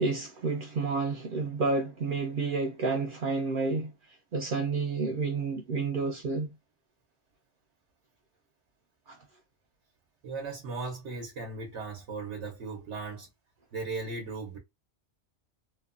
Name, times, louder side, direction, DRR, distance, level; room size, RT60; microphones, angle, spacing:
voice 1, 0.0-3.9 4.3-6.5 9.1-9.2, right 3 dB, 60° right, 0.6 m, -30 dB
voice 2, 10.2-13.3 13.7-14.6, right 4 dB, 90° right, 1.1 m, -37 dB
2.9 x 2.1 x 2.4 m
omnidirectional pair, 1.1 m